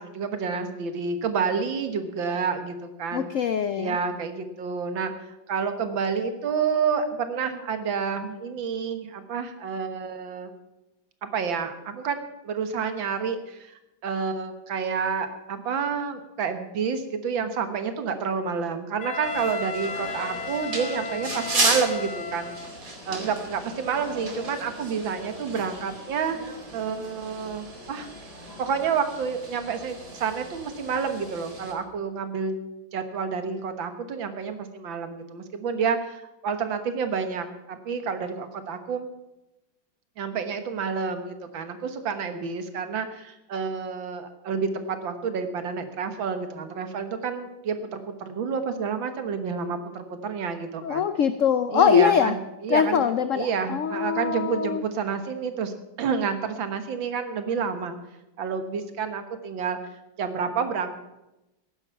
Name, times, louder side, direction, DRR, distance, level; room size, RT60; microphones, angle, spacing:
voice 1, 0.0-3.3 3.7-10.5 11.2-12.2 12.4-22.5 23.1-26.4 26.7-28.1 28.6-32.6 32.9-39.1 40.2-51.1 51.7-53.1 53.3-55.7 56.0-58.0 58.4-59.8 60.2-60.9, right 6 dB, 80° right, 8 dB, 2.1 m, -29 dB
voice 2, 3.1-4.0 50.8-52.3 52.7-54.8, left 7 dB, 80° left, 12 dB, 0.7 m, -23 dB
Wind instrument woodwind instrument, 19.0-22.8, left 4 dB, 35° left, 2.5 m, -34 dB
sound 1, 19.2-31.7, right 2 dB, 45° right, 3.0 m, -34 dB
15.5 x 11.0 x 5.8 m, 0.95 s
omnidirectional pair, 2.1 m